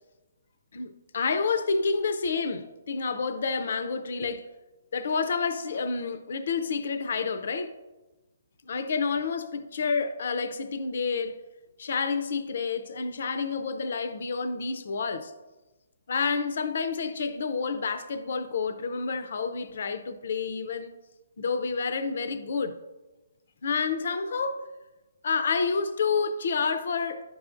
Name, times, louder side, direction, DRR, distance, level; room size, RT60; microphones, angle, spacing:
voice 1, 0.7-4.5 4.9-7.7 8.6-11.4 11.8-15.3 16.1-20.9 21.4-22.8 23.6-24.7 25.2-27.3, left 5 dB, 65° left, 0.5 m, -29 dB
10.5 x 6.2 x 2.5 m
hypercardioid pair, 150°, 0 cm